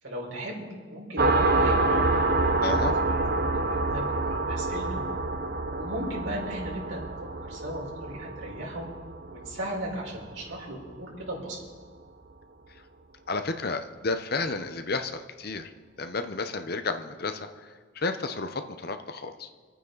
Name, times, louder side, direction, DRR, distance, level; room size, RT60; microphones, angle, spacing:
voice 1, 0.0-2.8 3.7-5.0 5.7-7.1 7.4-8.9 9.3-11.6, right 1 dB, 90° right, -3 dB, 4.7 m, -37 dB
sound 1, 1.2-10.4, right 2 dB, 50° right, 0.8 m, -27 dB
voice 2, 2.6-2.9 12.7-12.8 13.3-15.7 16.0-19.5, left 3 dB, 55° left, 8 dB, 0.9 m, -32 dB
27.0 x 9.2 x 4.0 m, 1.5 s
head